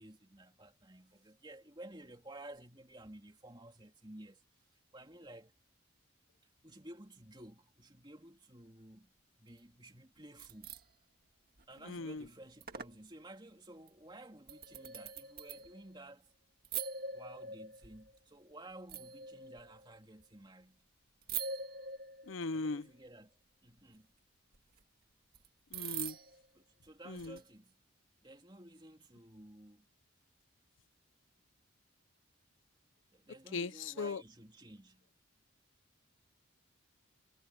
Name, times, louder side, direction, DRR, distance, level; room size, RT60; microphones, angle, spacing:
voice 1, 0.0-4.6 4.9-5.5 6.6-9.1 9.4-10.8 11.7-16.3 17.1-20.8 22.5-24.1 26.5-27.8 28.2-29.9 33.1-35.1, right 1 dB, 20° right, 2.7 m, -54 dB
sound 1, 10.2-10.8 11.6-12.0 12.2-12.3 12.6-13.0 13.9-14.0 14.5-16.0 16.6-18.2 18.9-19.9 21.2-22.7 24.5-24.6 25.3-25.5 25.7-26.5 27.2-27.4, right 6 dB, 45° right, 1.9 m, -43 dB
voice 2, 11.9-12.2 22.3-22.9 25.7-26.2 27.1-27.4 33.5-34.2, left 3 dB, 70° left, 0.6 m, -38 dB
head